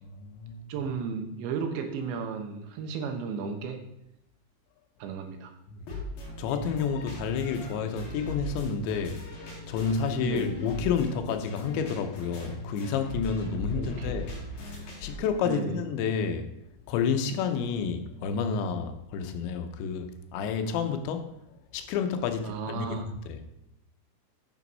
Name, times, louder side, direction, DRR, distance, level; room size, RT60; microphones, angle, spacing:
voice 1, 0.0-0.7 5.7-5.8 6.4-9.2 9.7-14.3 15.0-16.5 16.9-21.3 21.7-23.4, left 6 dB, 85° left, 7 dB, 3.2 m, -30 dB
voice 2, 0.7-3.8 5.0-5.5 10.2-10.6 13.7-14.3 15.4-15.8 22.4-23.1, right 5 dB, 85° right, 6 dB, 3.3 m, -34 dB
sound 1, 5.8-15.2, left 2 dB, 60° left, 4.1 m, -39 dB
9.0 x 7.0 x 5.4 m, 0.81 s
omnidirectional pair, 5.1 m